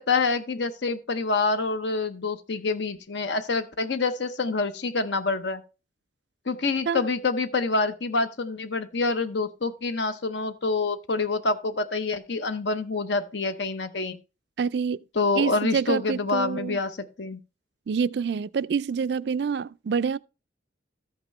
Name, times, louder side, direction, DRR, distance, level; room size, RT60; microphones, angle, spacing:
voice 1, 0.0-5.6 6.5-14.2 15.2-17.4, left 3 dB, 65° left, 0.8 m, -27 dB
voice 2, 14.6-15.0 15.4-16.8 17.9-20.2, right 6 dB, 60° right, 0.3 m, -27 dB
14.0 x 5.9 x 3.2 m
head